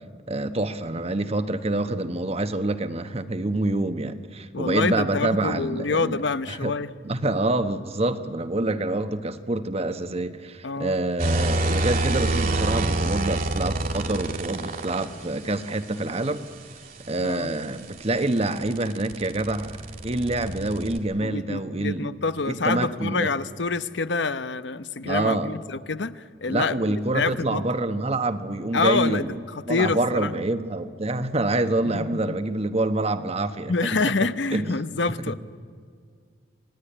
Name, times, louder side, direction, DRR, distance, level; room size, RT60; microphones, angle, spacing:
voice 1, 0.3-6.2 6.5-6.7 7.0-16.5 17.1-22.2 22.5-23.3 25.0-25.5 26.5-29.4 29.7-33.9 34.5-34.7, right 2 dB, 35° right, 10 dB, 1.1 m, -26 dB
voice 2, 4.5-6.9 10.6-10.9 17.2-17.5 21.2-27.6 28.7-30.4 31.8-32.4 33.7-35.3, left 4 dB, 75° left, 13 dB, 0.9 m, -27 dB
sound 1, 11.2-15.1 17.3-21.0, right 2 dB, 50° right, 2.3 m, -27 dB
27.0 x 19.0 x 9.9 m, 2.1 s
head